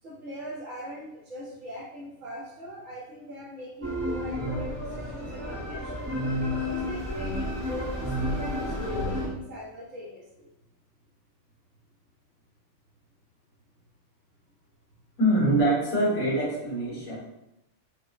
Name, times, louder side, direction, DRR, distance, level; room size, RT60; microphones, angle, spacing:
voice 1, 0.0-6.1 6.6-10.5, equal, 70° right, -9 dB, 1.3 m, -41 dB
sound 1, 3.8-9.3, left 1 dB, 25° right, 0.6 m, -31 dB
voice 2, 15.2-17.2, right 1 dB, 75° left, -7 dB, 1.9 m, -24 dB
4.6 x 2.0 x 2.3 m, 0.88 s
omnidirectional pair, 1.4 m